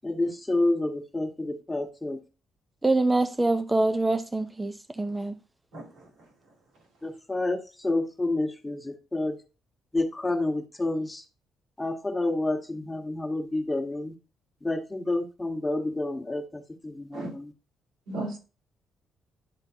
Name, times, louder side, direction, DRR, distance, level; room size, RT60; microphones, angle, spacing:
voice 1, 0.0-2.2 7.0-9.4 9.9-11.2 11.8-14.1 14.6-17.5, left 2 dB, 10° left, 1.4 m, -29 dB
voice 2, 2.8-5.3, right 2 dB, 15° right, 0.6 m, -25 dB
voice 3, 5.7-6.1 17.1-17.3 18.1-18.4, right 2 dB, 85° right, 3.5 m, -35 dB
11.5 x 3.8 x 2.8 m
cardioid pair, 90°, 0 cm